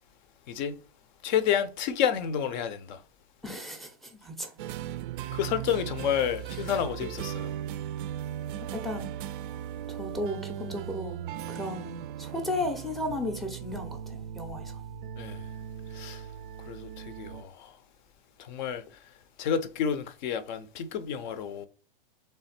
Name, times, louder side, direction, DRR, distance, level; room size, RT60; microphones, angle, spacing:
voice 1, 1.2-3.0 5.3-7.5 15.2-15.4 15.9-16.2 16.7-17.7 18.4-18.8 19.4-21.7, left 8 dB, 50° left, 0.6 m, -30 dB
voice 2, 3.4-4.5 8.5-9.1 9.9-11.2 11.5-14.8, left 1 dB, ahead, 0.6 m, -35 dB
sound 1, 4.6-17.4, right 10 dB, 60° right, 0.4 m, -38 dB
3.6 x 3.3 x 4.2 m
hypercardioid pair, 130°, 30 cm